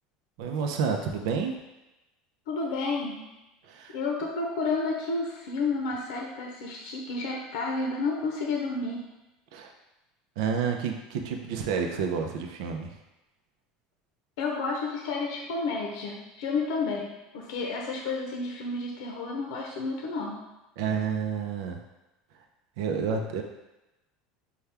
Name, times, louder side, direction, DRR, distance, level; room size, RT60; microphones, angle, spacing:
voice 1, 0.4-1.6 3.7-4.0 9.5-9.7 10.4-12.9 20.8-21.8 22.8-23.4, right 6 dB, 80° right, 3 dB, 0.6 m, -29 dB
voice 2, 2.5-3.2 3.9-9.1 14.4-20.4, left 3 dB, 80° left, 0 dB, 0.6 m, -31 dB
5.6 x 2.3 x 3.4 m, 0.99 s
supercardioid pair, 130°, 3 cm